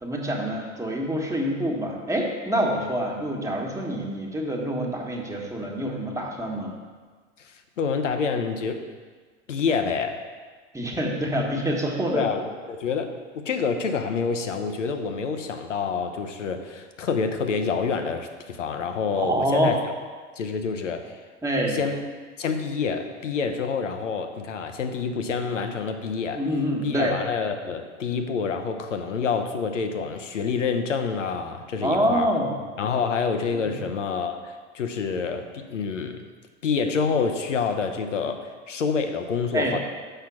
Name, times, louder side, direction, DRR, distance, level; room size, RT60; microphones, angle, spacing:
voice 1, 0.0-6.8 10.7-12.3 19.2-19.8 21.4-21.8 26.3-27.2 31.8-32.6 33.5-33.8 39.5-39.8, equal, 10° right, -1 dB, 1.5 m, -26 dB
voice 2, 7.4-8.9 9.5-10.2 12.1-19.7 20.4-21.2 21.7-22.0 22.4-26.4 26.8-32.3 32.8-36.3 36.6-39.8, left 5 dB, 80° left, 7 dB, 0.9 m, -27 dB
6.8 x 5.7 x 6.0 m, 1.5 s
figure-of-eight pair, 80°, 37 cm